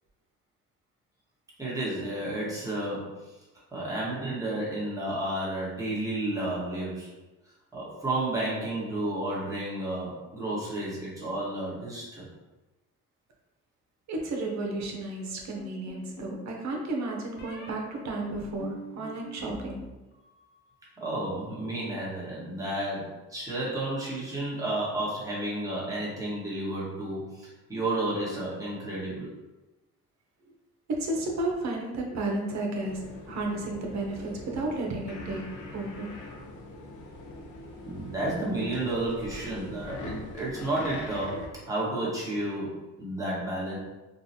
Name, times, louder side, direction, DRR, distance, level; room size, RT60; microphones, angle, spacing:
voice 1, 1.6-3.3 3.7-7.1 7.7-12.3 21.0-29.3 37.9-43.8, right 1 dB, 10° right, -6 dB, 1.3 m, -32 dB
voice 2, 14.1-19.8 31.0-36.1, right 2 dB, 65° right, 1 dB, 0.8 m, -33 dB
sound 1, 15.6-16.4 17.4-17.7 18.3-19.8 20.1-20.7, equal, 40° left, 0.8 m, -44 dB
sound 2, 32.8-41.5, left 2 dB, 75° left, 0.7 m, -42 dB
3.9 x 2.3 x 2.8 m, 1.1 s
cardioid pair, 90°, 30 cm